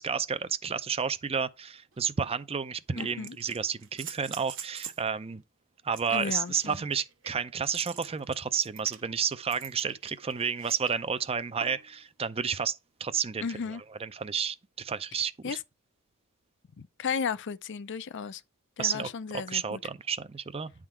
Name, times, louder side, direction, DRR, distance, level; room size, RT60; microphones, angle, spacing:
voice 1, 0.0-5.4 5.8-13.5 14.0-15.6 18.8-20.7, right 6 dB, 25° right, 0.5 m, -31 dB
sound 1, 1.9-2.0 3.0-5.1 5.9-10.9 11.6-12.0 13.6-13.7, right 8 dB, 60° right, 1.1 m, -45 dB
voice 2, 3.0-3.4 6.1-6.8 13.4-13.8 15.4-15.6 16.8-18.4 18.8-19.8, left 6 dB, 55° left, 0.5 m, -34 dB
9.7 x 3.7 x 4.4 m
head